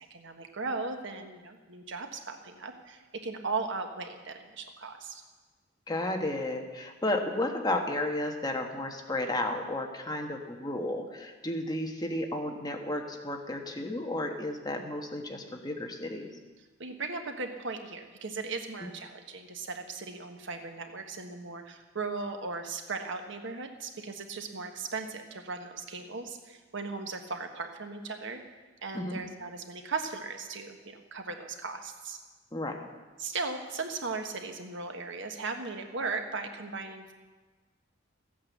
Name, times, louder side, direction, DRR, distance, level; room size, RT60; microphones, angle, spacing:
voice 1, 0.1-5.2 16.8-28.4 28.8-32.2 33.2-37.1, right 4 dB, 65° right, 5 dB, 1.3 m, -37 dB
voice 2, 5.9-16.3 28.9-29.2 32.5-32.8, left 1 dB, 20° left, 3 dB, 1.3 m, -33 dB
14.5 x 8.8 x 7.3 m, 1.3 s
head